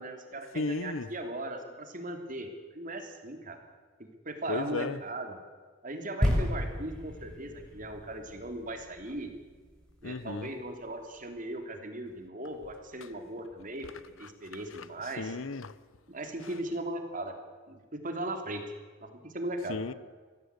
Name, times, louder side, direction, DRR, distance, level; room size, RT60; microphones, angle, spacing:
voice 1, 0.0-3.6 4.0-5.4 5.8-9.3 10.0-13.9 14.2-15.4 16.1-17.3 17.7-18.6 19.0-19.8, right 1 dB, 40° right, 3.1 m, -38 dB
voice 2, 0.5-1.1 4.5-5.0 10.0-10.5 15.2-15.7 19.7-19.9, left 3 dB, 85° left, 0.9 m, -34 dB
sound 1, 6.2-9.8 10.4-10.5, equal, 5° left, 6.7 m, -32 dB
23.0 x 16.0 x 8.3 m
head